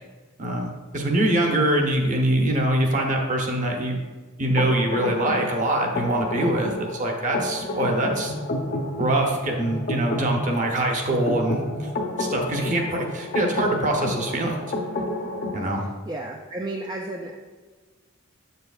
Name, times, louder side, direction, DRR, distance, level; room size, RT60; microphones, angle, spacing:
voice 1, 0.4-4.0 4.4-8.3 9.0-11.9 12.2-14.6 15.5-15.8, right 1 dB, 35° right, 1 dB, 0.9 m, -24 dB
sound 1, 4.6-15.6, left 1 dB, 45° left, 0.8 m, -30 dB
voice 2, 15.8-17.3, right 2 dB, 20° right, 1 dB, 0.4 m, -33 dB
7.5 x 6.7 x 2.4 m, 1.4 s
head